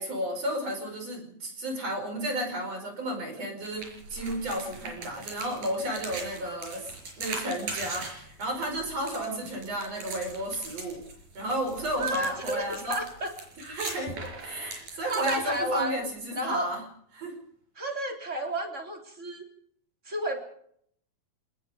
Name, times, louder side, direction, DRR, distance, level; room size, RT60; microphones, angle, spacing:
voice 1, 0.0-11.0 11.3-13.0 13.6-16.8 17.1-17.4, equal, 50° right, 4 dB, 6.3 m, -33 dB
sound 1, 3.6-16.1, right 3 dB, 65° right, 6.7 m, -41 dB
voice 2, 9.1-9.5 12.0-13.3 14.8-15.9 16.4-16.7 17.8-19.5 20.1-20.4, right 1 dB, 20° right, 3 dB, 3.6 m, -32 dB
26.0 x 20.0 x 5.1 m, 0.64 s
omnidirectional pair, 3.9 m